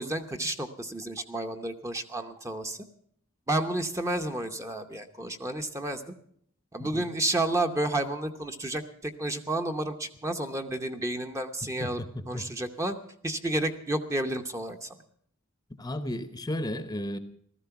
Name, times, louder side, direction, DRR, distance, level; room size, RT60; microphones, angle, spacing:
voice 1, 0.0-2.8 3.5-6.0 6.7-12.0 12.3-13.0 13.2-14.9, right 1 dB, 15° right, 6 dB, 0.8 m, -31 dB
voice 2, 11.6-12.5 15.7-17.2, left 1 dB, 20° left, 11 dB, 0.8 m, -34 dB
15.0 x 14.0 x 5.8 m, 0.65 s
head